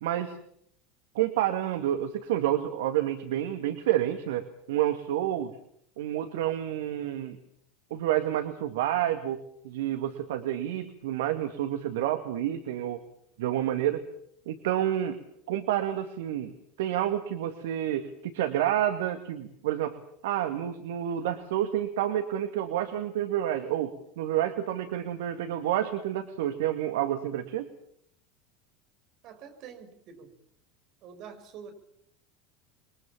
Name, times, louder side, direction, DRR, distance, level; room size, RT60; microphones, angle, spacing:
voice 1, 0.0-0.4 1.2-5.5 6.0-7.4 7.9-13.0 13.4-14.0 14.5-15.2 15.5-19.9 20.2-23.9 24.2-27.7, right 12 dB, 70° right, 8 dB, 2.0 m, -29 dB
voice 2, 29.2-30.3 31.0-31.7, right 7 dB, 50° right, 7 dB, 6.4 m, -46 dB
28.5 x 23.0 x 7.4 m, 0.71 s
hypercardioid pair, 80°, 0 cm